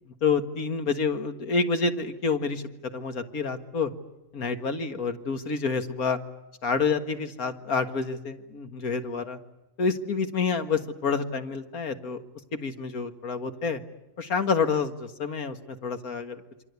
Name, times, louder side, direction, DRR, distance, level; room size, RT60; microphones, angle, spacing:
voice 1, 0.2-2.6 2.9-3.9 4.3-6.2 6.6-9.4 9.8-12.2 12.5-13.8 14.2-16.4, left 4 dB, 70° left, 8 dB, 2.2 m, -28 dB
28.0 x 25.0 x 8.3 m, 0.94 s
omnidirectional pair, 1.6 m